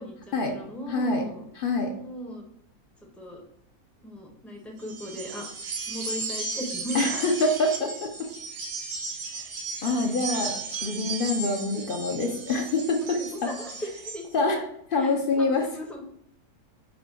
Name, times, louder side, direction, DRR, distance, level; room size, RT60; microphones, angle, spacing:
voice 1, 0.0-1.4 2.0-2.4 3.2-3.4 4.0-5.5 5.9-7.2 13.1-13.2 13.4-13.7 14.0-14.2 15.0-16.0, equal, ahead, 0 dB, 0.4 m, -38 dB
voice 2, 0.9-1.2 1.6-1.9 6.9-8.3 9.3-9.4 9.8-13.5 14.3-15.7, left 3 dB, 65° left, 3 dB, 0.5 m, -26 dB
sound 1, 4.8-14.2, right 4 dB, 75° right, 1.1 m, -35 dB
4.9 x 2.2 x 4.6 m, 0.73 s
omnidirectional pair, 1.6 m